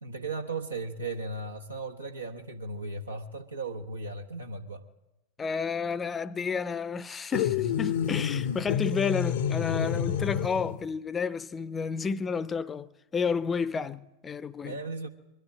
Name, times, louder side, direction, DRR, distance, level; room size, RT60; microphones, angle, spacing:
voice 1, 0.0-4.8 9.8-10.0 14.6-15.1, right 3 dB, 75° right, 1.1 m, -36 dB
voice 2, 5.4-14.8, left 5 dB, 20° left, 0.6 m, -31 dB
sound 1, 7.3-10.8, left 9 dB, 55° left, 0.7 m, -29 dB
22.0 x 12.5 x 9.7 m
figure-of-eight pair, 90°, 0 cm